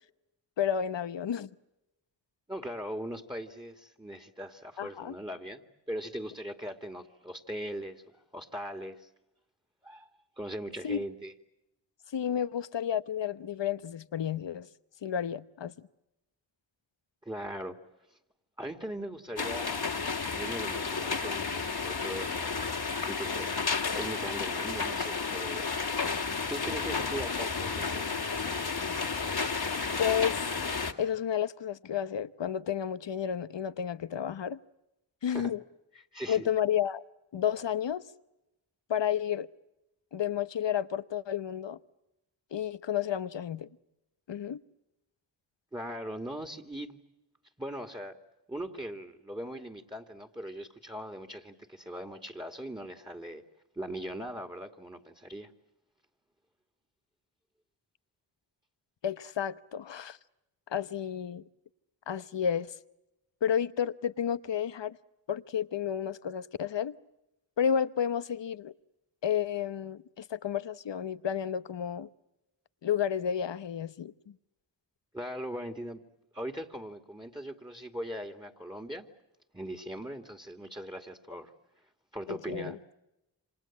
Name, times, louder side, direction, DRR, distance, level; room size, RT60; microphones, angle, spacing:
voice 1, 0.6-1.5 4.8-5.1 10.8-11.0 12.1-14.7 15.0-15.7 30.0-30.5 31.0-34.6 35.2-35.6 36.3-37.0 37.3-38.0 38.9-39.5 40.1-41.8 42.5-43.7 44.3-44.6 59.0-60.2 60.7-61.4 62.1-62.7 63.4-65.0 65.3-67.0 67.6-68.7 69.2-72.1 72.8-74.3 82.3-82.8, left 8 dB, 70° left, 1.0 m, -31 dB
voice 2, 2.5-9.1 9.8-10.1 10.4-11.3 17.2-17.8 18.6-19.8 20.3-22.7 23.0-23.5 23.9-25.7 26.5-28.1 35.3-35.5 36.1-36.5 45.7-47.0 47.6-48.2 48.5-53.4 53.8-55.5 75.1-76.0 76.3-79.1 79.5-81.5 82.1-82.8, equal, 10° right, 2.4 m, -40 dB
sound 1, 19.4-30.9, left 4 dB, 55° left, 2.2 m, -32 dB
28.0 x 26.0 x 7.4 m
cardioid pair, 40°, 45 cm